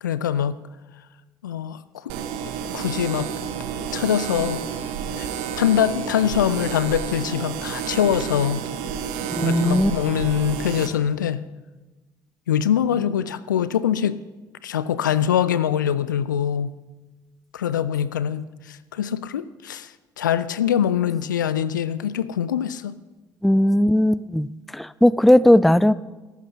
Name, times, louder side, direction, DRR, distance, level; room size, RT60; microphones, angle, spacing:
voice 1, 0.0-0.6 1.4-2.1 2.7-3.3 3.9-4.6 5.2-5.3 5.6-8.7 9.4-11.4 12.5-14.2 14.6-16.8 17.5-19.9 20.2-23.0, left 9 dB, 80° left, 16 dB, 0.4 m, -23 dB
sound 1, 2.1-10.9, right 7 dB, 65° right, 1.0 m, -30 dB
voice 2, 9.3-9.9 23.4-24.5 24.7-25.9, left 1 dB, ahead, 19 dB, 0.3 m, -17 dB
17.0 x 14.0 x 2.8 m, 1.2 s
figure-of-eight pair, 50°, 10 cm